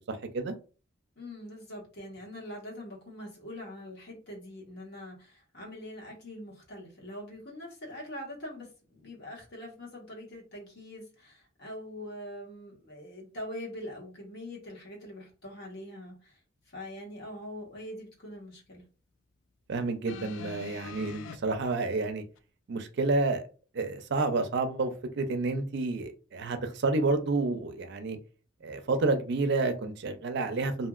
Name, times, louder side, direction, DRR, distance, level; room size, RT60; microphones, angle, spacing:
voice 1, 0.1-0.6 19.7-22.2 22.7-23.4 23.7-28.2 28.6-30.9, right 3 dB, 60° right, 0.5 m, -29 dB
voice 2, 1.2-16.4 16.7-18.8, left 1 dB, 60° left, 1.2 m, -43 dB
sound 1, 20.1-21.4 22.4-22.5, left 6 dB, 90° left, 0.3 m, -43 dB
2.8 x 2.7 x 2.4 m
head